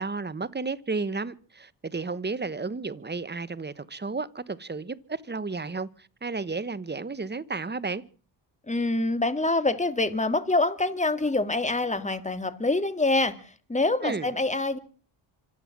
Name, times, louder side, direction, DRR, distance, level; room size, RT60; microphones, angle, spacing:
voice 1, 0.0-8.0 14.0-14.3, right 4 dB, 20° right, 1.2 m, -32 dB
voice 2, 8.7-14.8, left 2 dB, 15° left, 2.2 m, -26 dB
26.0 x 9.2 x 6.1 m
cardioid pair, 70°, 48 cm